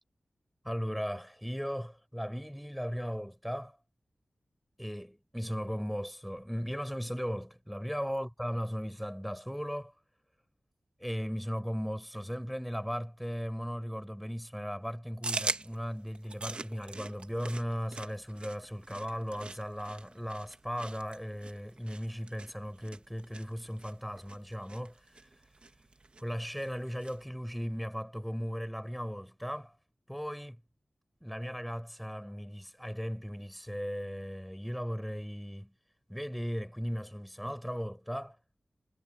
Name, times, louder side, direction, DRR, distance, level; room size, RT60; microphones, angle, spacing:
voice 1, 0.6-3.8 4.8-9.9 11.0-25.4 26.2-29.8 30.1-30.6 31.2-35.7 36.1-38.4, equal, ahead, 7.7 m, -37 dB
sound 1, 15.2-27.3, right 3 dB, 45° right, 1.7 m, -43 dB
wide cardioid pair, 70°, 3 cm